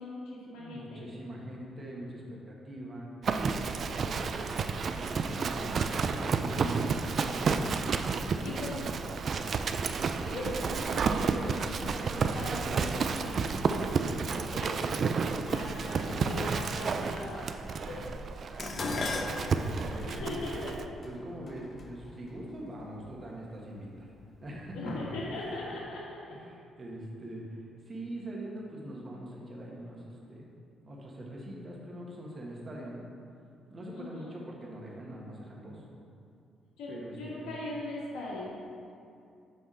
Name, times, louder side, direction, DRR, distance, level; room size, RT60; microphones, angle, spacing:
voice 1, 0.0-1.0 8.4-8.8 10.2-14.8 15.5-18.0 18.5-18.6 19.8-20.7 24.7-26.4 33.9-34.4 36.8-38.5, left 2 dB, 90° left, -6 dB, 1.5 m, -40 dB
voice 2, 0.6-3.1 3.7-8.1 8.4-8.6 9.1-9.5 17.9-18.0 18.9-19.6 19.9-20.7 21.0-24.1 24.4-24.9 26.3-30.6 30.8-33.0 33.7-35.8 36.9-37.5, right 1 dB, 35° right, -3 dB, 1.5 m, -43 dB
Livestock farm animals working animals, 3.2-20.8, right 5 dB, 50° right, 0.4 m, -31 dB
Dishes pots and pans, 18.6-23.0 23.8-24.2 24.6-25.5 25.7-25.8, left 3 dB, 45° left, 0.7 m, -38 dB
7.9 x 3.5 x 5.5 m, 2.5 s
cardioid pair, 90°, 0 cm